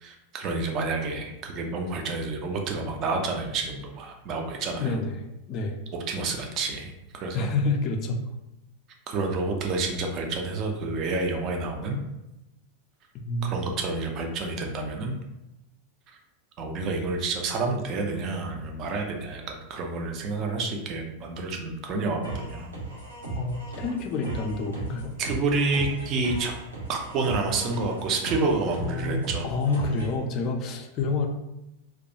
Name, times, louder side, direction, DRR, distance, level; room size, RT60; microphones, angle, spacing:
voice 1, 0.0-5.0 6.1-7.5 9.1-12.0 13.4-15.2 16.6-22.7 25.2-26.5 26.9-29.5, right 3 dB, 35° right, 2 dB, 0.4 m, -29 dB
voice 2, 4.8-5.2 5.5-5.8 7.3-8.2 13.1-13.5 23.4-25.1 28.8-31.3, left 3 dB, 35° left, 3 dB, 0.3 m, -28 dB
sound 1, 22.2-30.2, right 3 dB, 80° right, 0.8 m, -36 dB
2.3 x 2.2 x 2.7 m, 0.92 s
figure-of-eight pair, 90°, 0 cm